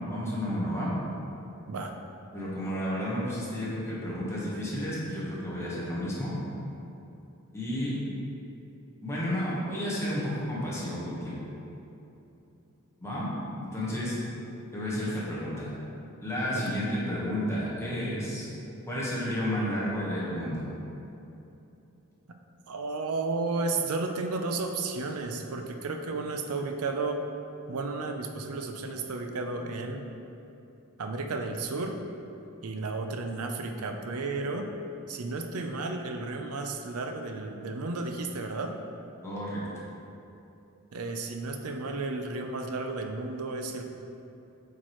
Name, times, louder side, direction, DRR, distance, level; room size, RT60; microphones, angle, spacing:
voice 1, 0.1-1.0 2.3-6.4 7.5-8.0 9.0-11.4 13.0-14.2 14.7-15.7 16.2-18.5 18.9-20.7 39.2-39.6, equal, 10° left, -7 dB, 1.3 m, -31 dB
voice 2, 22.7-27.2 27.7-30.0 31.0-32.0 32.6-34.7 35.1-38.7 40.9-43.8, right 3 dB, 80° right, 5 dB, 0.6 m, -33 dB
8.2 x 4.7 x 3.1 m, 2.9 s
head